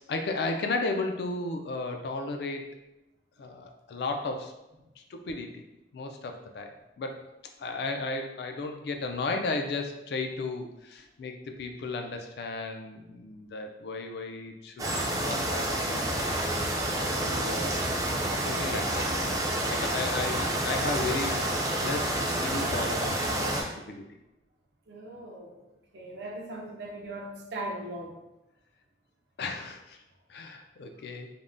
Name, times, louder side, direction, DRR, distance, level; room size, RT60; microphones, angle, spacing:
voice 1, 0.1-2.7 3.4-4.5 5.0-5.6 5.9-7.3 7.6-14.9 15.2-16.5 16.8-17.8 18.4-21.4 21.8-24.0 29.4-30.0 30.3-31.3, left 3 dB, 60° left, 4 dB, 0.3 m, -34 dB
sound 1, 14.8-23.6, right 1 dB, 20° right, 0.3 m, -29 dB
voice 2, 24.9-25.6 25.9-28.2, right 1 dB, 65° right, -1 dB, 0.5 m, -39 dB
3.4 x 2.1 x 2.5 m, 0.94 s
head